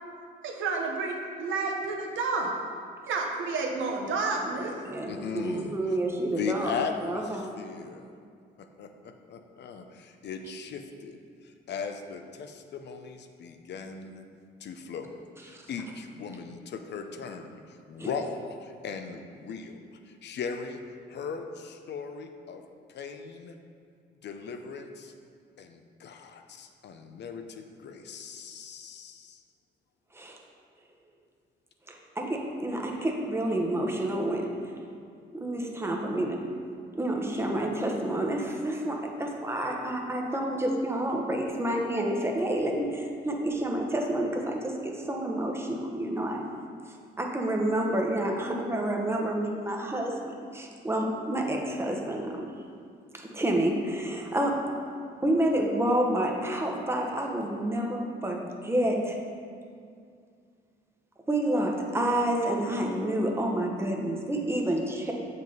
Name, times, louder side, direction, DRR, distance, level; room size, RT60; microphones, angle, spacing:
voice 1, 0.4-2.5 3.1-4.7, right 3 dB, 80° right, 1 dB, 1.1 m, -30 dB
voice 2, 4.4-6.7 7.0-7.5 15.5-15.6 18.0-18.1 30.1-30.4 31.9-34.7 35.3-36.4 36.9-46.4 47.2-52.5 53.1-54.6 55.2-59.1 61.3-65.1, right 1 dB, 10° right, 0 dB, 1.0 m, -29 dB
voice 3, 5.1-6.0 6.3-8.1 8.6-11.2 11.4-14.3 14.6-20.8 21.1-22.6 22.9-23.5 24.2-25.1 25.6-29.4, left 5 dB, 60° left, 6 dB, 0.6 m, -38 dB
7.2 x 5.3 x 4.0 m, 2.3 s
cardioid pair, 90°, 20 cm